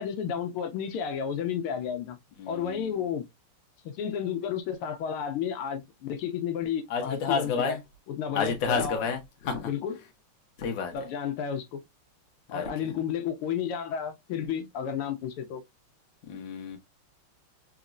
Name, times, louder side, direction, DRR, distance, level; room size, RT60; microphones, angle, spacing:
voice 1, 0.0-2.2 2.5-3.2 3.9-7.8 8.1-9.0 9.6-10.0 10.9-11.8 12.5-15.6, left 8 dB, 90° left, 1.6 m, -32 dB
voice 2, 2.4-2.9 6.9-7.8 8.3-9.7 10.6-10.9 12.5-12.6 16.2-16.8, left 5 dB, 60° left, 1.5 m, -30 dB
4.1 x 2.9 x 2.4 m
omnidirectional pair, 2.4 m